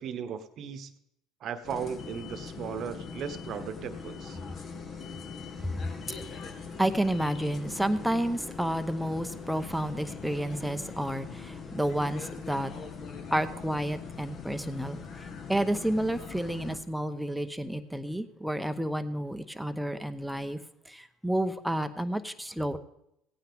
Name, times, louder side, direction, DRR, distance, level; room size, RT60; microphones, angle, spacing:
voice 1, 0.0-0.9 1.4-4.4, right 7 dB, 50° right, 11 dB, 1.1 m, -36 dB
sound 1, 1.6-16.8, left 5 dB, 45° left, 1.5 m, -42 dB
voice 2, 5.6-12.7 13.3-15.0 15.5-20.6 20.9-22.8, right 1 dB, ahead, 9 dB, 0.9 m, -30 dB
16.5 x 9.2 x 3.6 m, 0.80 s
hypercardioid pair, 80°, 0 cm